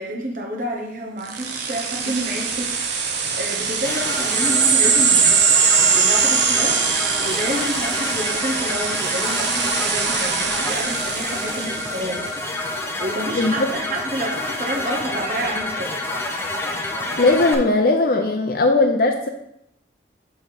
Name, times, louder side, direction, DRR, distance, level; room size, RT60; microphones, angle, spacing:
voice 1, 0.0-5.4 5.8-12.6 13.0-16.4, right 1 dB, 45° right, 0 dB, 1.1 m, -29 dB
sound 1, 1.3-12.4, right 6 dB, 75° right, 0.9 m, -21 dB
sound 2, 3.8-17.5, left 2 dB, 15° left, 0.7 m, -28 dB
voice 2, 13.3-13.7 17.2-19.3, left 2 dB, 50° left, 3 dB, 0.6 m, -18 dB
5.2 x 5.0 x 5.9 m, 0.79 s
head